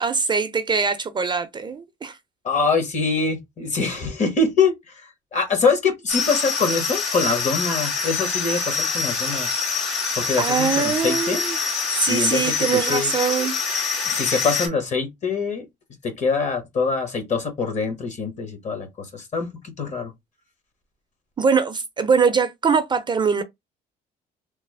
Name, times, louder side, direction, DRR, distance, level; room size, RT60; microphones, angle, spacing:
voice 1, 0.0-2.2 10.4-11.6 12.0-13.5 21.4-23.4, right 5 dB, 25° right, 0.4 m, -22 dB
voice 2, 2.4-4.7 5.3-9.5 10.2-11.4 12.1-13.1 14.0-15.7 16.2-19.5 19.8-20.1, left 4 dB, 45° left, 1.2 m, -24 dB
sound 1, 6.1-14.7, left 5 dB, 80° left, 1.5 m, -25 dB
3.2 x 2.0 x 3.3 m
cardioid pair, 110°, 17 cm